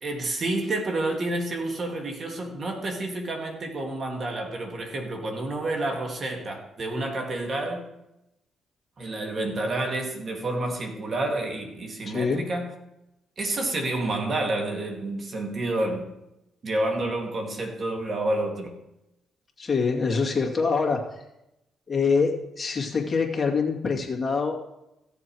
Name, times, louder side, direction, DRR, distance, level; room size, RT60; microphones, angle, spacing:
voice 1, 0.0-7.9 9.0-12.7 13.4-16.1 16.6-18.8, right 2 dB, 45° right, 3 dB, 2.2 m, -29 dB
voice 2, 12.1-12.5 19.6-21.1 21.9-24.6, left 5 dB, 30° left, -1 dB, 2.4 m, -25 dB
16.0 x 7.4 x 4.7 m, 0.89 s
cardioid pair, 90°, 0 cm